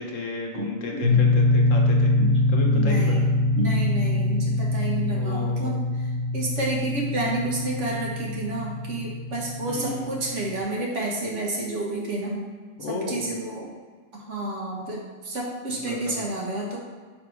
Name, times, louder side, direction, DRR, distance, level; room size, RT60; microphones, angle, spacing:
voice 1, 0.0-2.1 2.5-3.2 5.1-5.8 9.7-10.1 12.8-13.3 15.7-16.2, left 3 dB, 80° left, 0 dB, 1.3 m, -33 dB
voice 2, 0.5-1.2 2.2-2.4 2.7-3.3 3.5-6.0 6.3-12.5 12.9-13.7 14.1-16.8, right 2 dB, 65° right, -3 dB, 1.6 m, -30 dB
sound 1, 1.0-10.6, left 2 dB, 30° right, 0.9 m, -24 dB
5.3 x 4.1 x 4.7 m, 1.5 s
omnidirectional pair, 1.3 m